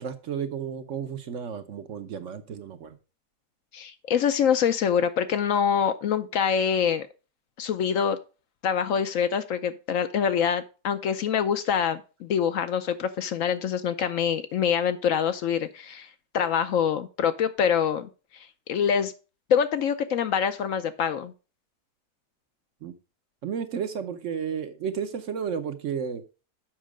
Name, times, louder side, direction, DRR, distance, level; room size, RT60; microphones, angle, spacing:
voice 1, 0.0-3.0 22.8-22.9 23.4-26.2, right 7 dB, 60° right, 9 dB, 1.0 m, -32 dB
voice 2, 3.7-7.1 7.6-8.2 8.6-16.1 16.3-18.1 18.7-19.1 19.5-21.3, left 7 dB, 65° left, 11 dB, 0.9 m, -25 dB
7.4 x 5.5 x 5.0 m, 0.33 s
omnidirectional pair, 1.6 m